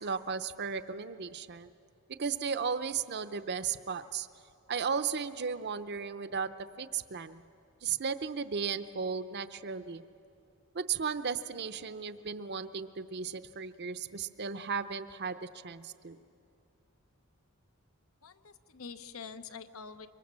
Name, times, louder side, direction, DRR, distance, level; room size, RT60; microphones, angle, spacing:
voice 1, 0.0-1.7 2.1-4.3 4.7-6.5 6.8-7.4 7.8-10.0 10.7-16.2, right 6 dB, 50° right, 11 dB, 0.7 m, -35 dB
voice 2, 18.2-20.1, left 5 dB, 70° left, 11 dB, 0.9 m, -46 dB
25.0 x 23.5 x 7.4 m, 2.7 s
head